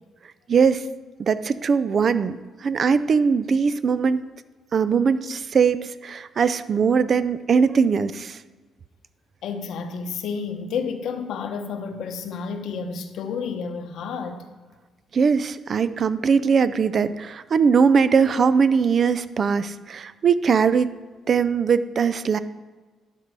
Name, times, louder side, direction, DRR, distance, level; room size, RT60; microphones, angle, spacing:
voice 1, 0.5-0.8 1.2-4.2 4.7-8.4 15.1-20.9 21.3-22.4, right 6 dB, 50° right, 14 dB, 0.4 m, -20 dB
voice 2, 9.4-14.4, left 5 dB, 75° left, 7 dB, 0.9 m, -30 dB
11.5 x 5.3 x 4.7 m, 1.3 s
cardioid pair, 90°, 0 cm